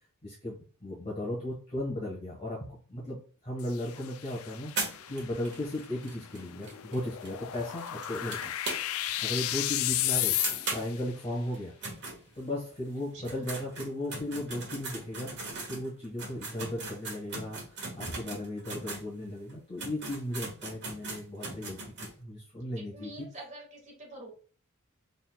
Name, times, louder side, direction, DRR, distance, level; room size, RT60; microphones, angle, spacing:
voice 1, 0.2-4.7 5.1-8.4 9.2-10.4 10.7-11.8 12.3-21.8 22.2-23.1, left 1 dB, 30° left, -5 dB, 1.4 m, -36 dB
sound 1, 3.6-11.0, left 13 dB, 75° left, 0.3 m, -34 dB
sound 2, 4.8-9.2 9.5-9.6 9.9-10.0 10.4-12.7 13.1-19.1 19.5-19.6 19.8-22.1, right 3 dB, 55° right, 1.6 m, -39 dB
voice 2, 13.1-13.5 22.9-24.3, right 1 dB, 35° right, -1 dB, 1.7 m, -46 dB
4.0 x 3.9 x 2.2 m, 0.40 s
head